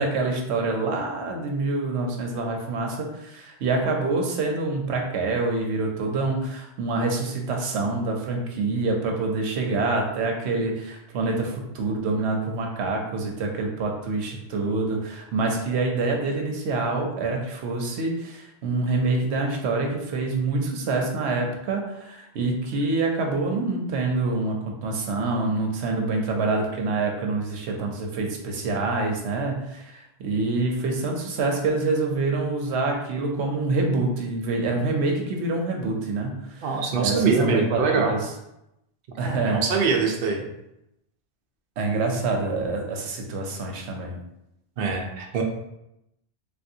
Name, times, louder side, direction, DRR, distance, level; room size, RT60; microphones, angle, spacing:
voice 1, 0.0-38.3 39.2-40.0 41.8-44.2, right 3 dB, 85° right, 1 dB, 0.9 m, -26 dB
voice 2, 36.6-38.2 39.2-40.4 44.8-45.4, right 4 dB, 60° right, 1 dB, 0.7 m, -23 dB
3.4 x 2.5 x 2.7 m, 0.85 s
omnidirectional pair, 1.1 m